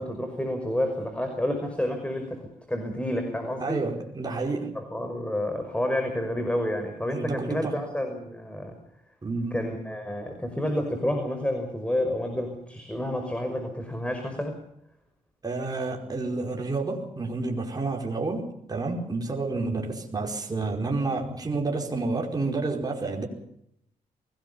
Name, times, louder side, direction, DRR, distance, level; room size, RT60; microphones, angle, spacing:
voice 1, 0.0-2.4 2.7-3.8 4.8-8.8 9.5-14.6, left 1 dB, 10° left, 6 dB, 5.7 m, -29 dB
voice 2, 3.6-4.7 7.1-7.8 9.2-9.7 15.4-23.3, right 3 dB, 25° right, 1 dB, 5.0 m, -30 dB
24.5 x 18.5 x 7.1 m, 0.75 s
cardioid pair, 65°, 14 cm